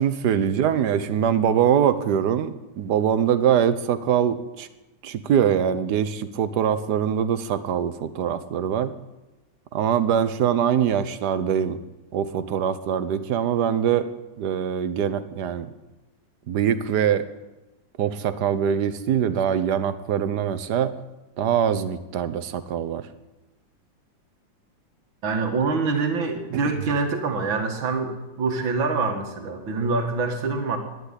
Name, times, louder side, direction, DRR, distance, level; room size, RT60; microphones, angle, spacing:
voice 1, 0.0-4.7 5.0-8.9 9.7-11.8 12.1-14.1 14.4-15.7 16.5-17.3 18.0-20.9 21.4-23.1, right 8 dB, 65° right, 12 dB, 1.4 m, -23 dB
voice 2, 25.2-30.8, right 4 dB, 85° right, 4 dB, 2.5 m, -25 dB
12.0 x 11.0 x 9.9 m, 1.0 s
omnidirectional pair, 2.1 m